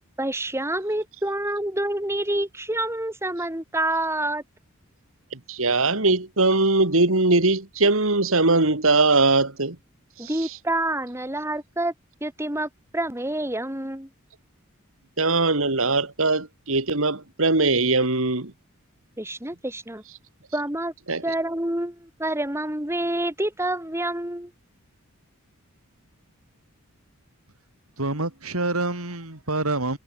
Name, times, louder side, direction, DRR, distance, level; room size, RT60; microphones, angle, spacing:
voice 1, 0.2-4.4 10.2-11.9 12.2-14.1 19.2-20.0 20.5-20.9 21.2-24.5, right 1 dB, 10° right, 5.2 m, -27 dB
voice 2, 5.3-9.8 10.2-10.6 15.2-18.5 21.1-21.2, right 3 dB, 70° right, 2.7 m, -21 dB
voice 3, 28.0-30.0, right 2 dB, 85° right, 4.9 m, -27 dB
head